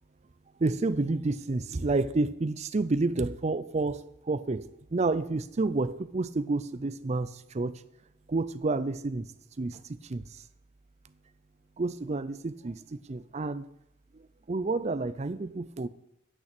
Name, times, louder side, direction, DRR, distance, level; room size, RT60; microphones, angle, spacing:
voice 1, 0.6-7.8 8.3-9.3 9.6-10.4 11.8-13.7 14.1-15.9, right 3 dB, 30° right, 0.5 m, -30 dB
9.3 x 5.8 x 8.3 m
head